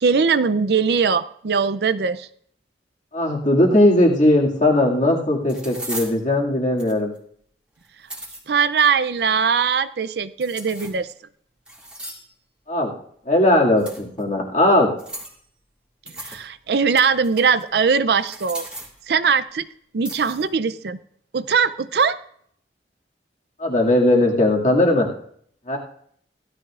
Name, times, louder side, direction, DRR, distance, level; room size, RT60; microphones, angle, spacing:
voice 1, 0.0-2.3 8.5-11.1 16.2-18.7 19.1-19.7 19.9-21.0 21.3-22.2, right 5 dB, 60° right, 14 dB, 0.5 m, -20 dB
voice 2, 3.1-7.1 12.7-12.9 13.3-14.9 23.6-25.1 25.7-25.8, left 1 dB, 40° left, -1 dB, 2.2 m, -18 dB
sound 1, 4.6-4.7 5.5-6.2 6.8-7.2 7.8-8.4 10.4-11.1 11.7-12.3 13.8-14.2 15.0-15.4 16.1-16.4 16.7-17.6 18.2-19.0 20.0-20.5, right 1 dB, 5° right, 2.2 m, -36 dB
16.5 x 13.0 x 2.5 m, 0.64 s
head